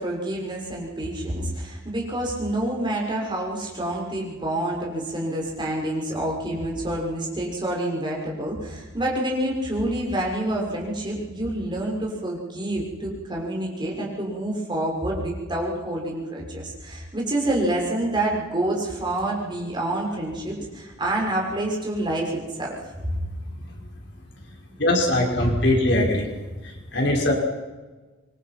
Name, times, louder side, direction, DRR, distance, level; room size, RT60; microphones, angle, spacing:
voice 1, 0.0-22.9, right 1 dB, 25° right, -2 dB, 6.3 m, -27 dB
voice 2, 24.8-26.3 26.6-27.3, left 1 dB, 65° left, 0 dB, 5.7 m, -21 dB
26.0 x 24.5 x 6.1 m, 1.3 s
head